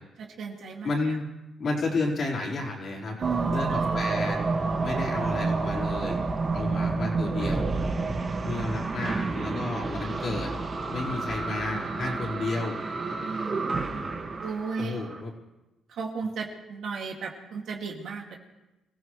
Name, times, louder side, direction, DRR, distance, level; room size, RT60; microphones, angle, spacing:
voice 1, 0.2-0.9 3.2-4.0 8.1-8.9 13.2-13.7 14.4-15.1 15.9-18.4, right 5 dB, 70° right, 1 dB, 2.3 m, -35 dB
voice 2, 0.8-1.3 1.6-3.2 3.5-6.2 6.5-7.7 8.5-10.5 10.9-12.8 14.8-15.3, left 3 dB, 55° left, -2 dB, 4.4 m, -31 dB
sound 1, 3.2-15.2, right 3 dB, 40° right, 1.9 m, -29 dB
26.5 x 15.0 x 3.3 m, 1.0 s
cardioid pair, 90°, 0 cm